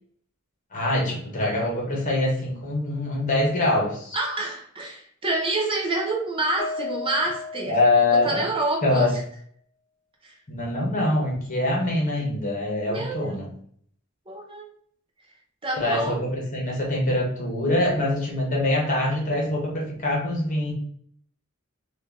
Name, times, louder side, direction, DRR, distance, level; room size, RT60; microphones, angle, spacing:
voice 1, 0.7-4.2 7.7-8.5 8.8-9.1 10.5-13.5 15.7-20.7, left 2 dB, 40° left, -2 dB, 1.3 m, -24 dB
voice 2, 4.1-7.8 8.1-9.2 10.2-10.3 12.9-13.4 14.3-14.7 15.6-16.2, right 2 dB, 25° right, 0 dB, 0.6 m, -28 dB
Mallet percussion, 6.6-8.8, left 3 dB, 25° left, 0.3 m, -35 dB
3.2 x 2.4 x 3.6 m, 0.62 s
head